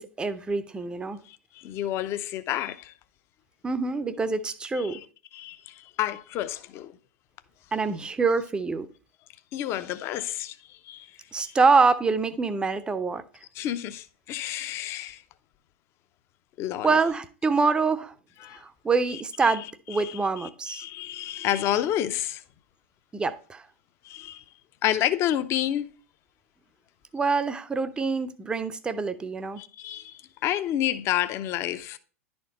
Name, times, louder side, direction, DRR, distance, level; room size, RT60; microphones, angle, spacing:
voice 1, 0.0-1.2 3.6-5.0 7.7-8.9 11.3-13.2 16.8-18.1 18.5-20.8 23.1-23.6 27.1-29.6, right 4 dB, 10° right, 0.6 m, -25 dB
voice 2, 1.3-2.9 4.8-5.0 5.3-6.9 9.5-11.1 11.4-11.5 13.6-15.2 16.6-16.9 18.4-18.6 19.1-22.4 24.0-24.4 24.8-25.9 29.6-32.0, left 12 dB, 35° left, 0.6 m, -30 dB
10.5 x 4.4 x 4.2 m
figure-of-eight pair, 90°, 7 cm